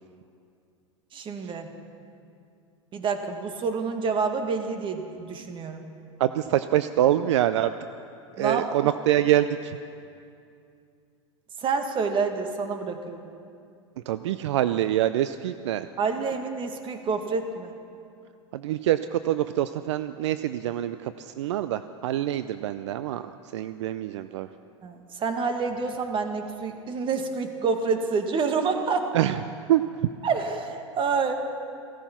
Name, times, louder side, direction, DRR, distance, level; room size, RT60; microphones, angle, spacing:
voice 1, 1.1-1.7 2.9-5.8 8.4-8.9 11.6-13.3 16.0-17.7 24.8-29.1 30.2-31.4, right 5 dB, 35° right, 6 dB, 1.7 m, -28 dB
voice 2, 6.2-7.7 8.4-9.7 14.1-15.9 18.5-24.5 29.1-29.4 29.7-29.8, right 12 dB, 70° right, 12 dB, 0.5 m, -25 dB
16.0 x 13.5 x 5.9 m, 2.5 s
hypercardioid pair, 95°, 16 cm